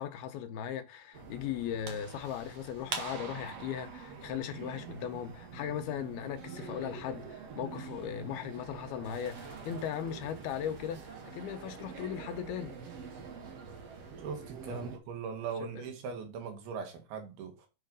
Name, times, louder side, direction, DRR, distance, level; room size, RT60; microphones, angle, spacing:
voice 1, 0.0-12.8 14.7-14.9 15.6-15.8, left 9 dB, 80° left, 2.6 m, -38 dB
sound 1, 1.1-15.0, right 5 dB, 55° right, 1.8 m, -45 dB
voice 2, 14.2-17.7, right 6 dB, 75° right, 3.3 m, -40 dB
6.6 x 5.6 x 5.3 m
omnidirectional pair, 4.6 m